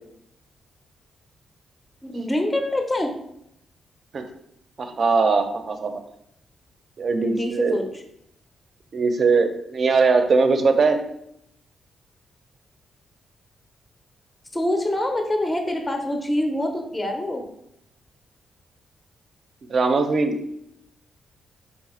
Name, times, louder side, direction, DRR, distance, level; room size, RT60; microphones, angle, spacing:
voice 1, 2.0-3.1 7.2-8.0 14.5-17.5, left 1 dB, 15° left, 3 dB, 0.5 m, -25 dB
voice 2, 4.8-5.9 7.0-7.8 8.9-11.0 19.7-20.4, right 4 dB, 50° right, 7 dB, 0.5 m, -20 dB
4.2 x 2.4 x 4.2 m, 0.75 s
cardioid pair, 105°, 0 cm